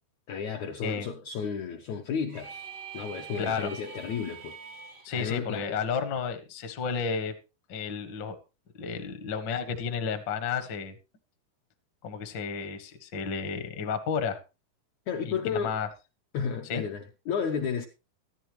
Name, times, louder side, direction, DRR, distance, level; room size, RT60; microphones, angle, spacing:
voice 1, 0.3-2.7 2.9-4.5 5.1-5.8 15.1-15.8 16.3-17.9, left 6 dB, 75° left, 1.7 m, -32 dB
sound 1, 2.3-5.1, right 6 dB, 65° right, 0.8 m, -43 dB
voice 2, 3.4-3.7 5.0-7.3 7.7-8.4 8.8-10.9 12.0-14.4 15.2-15.9 16.7-16.8, left 6 dB, 60° left, 1.2 m, -32 dB
14.0 x 12.5 x 3.1 m
omnidirectional pair, 4.4 m